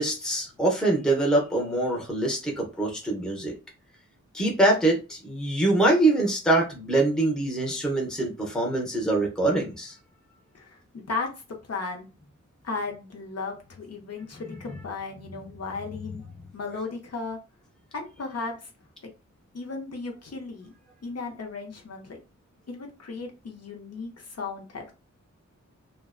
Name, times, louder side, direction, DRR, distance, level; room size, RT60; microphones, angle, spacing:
voice 1, 0.0-3.5 4.3-10.0, right 2 dB, ahead, 0 dB, 0.7 m, -24 dB
voice 2, 10.5-11.3 11.7-12.1 12.6-16.2 16.5-17.4 17.9-18.7 19.0-19.1 19.5-20.7 21.0-22.2 22.7-24.9, left 4 dB, 55° left, 2 dB, 0.7 m, -35 dB
2.4 x 2.1 x 2.4 m, 0.30 s
wide cardioid pair, 95°, 30 cm